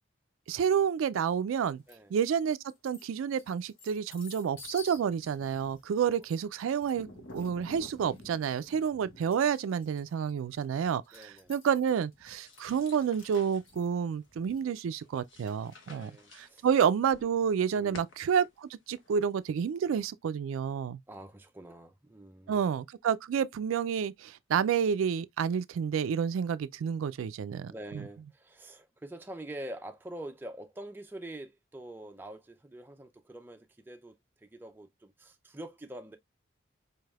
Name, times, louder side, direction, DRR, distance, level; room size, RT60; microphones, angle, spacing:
voice 1, 0.5-1.8 2.1-2.6 2.8-7.1 7.3-16.1 16.4-21.0 22.5-27.7, right 7 dB, 90° right, 0.3 m, -29 dB
sound 1, 1.9-2.3 2.7-16.0, left 2 dB, 90° left, 1.3 m, -51 dB
voice 2, 11.1-11.5 15.8-16.7 17.7-18.1 21.1-22.6 27.7-36.2, right 1 dB, 10° right, 0.4 m, -45 dB
sound 2, 12.3-19.7, left 3 dB, 75° left, 1.0 m, -56 dB
4.6 x 3.3 x 2.3 m
head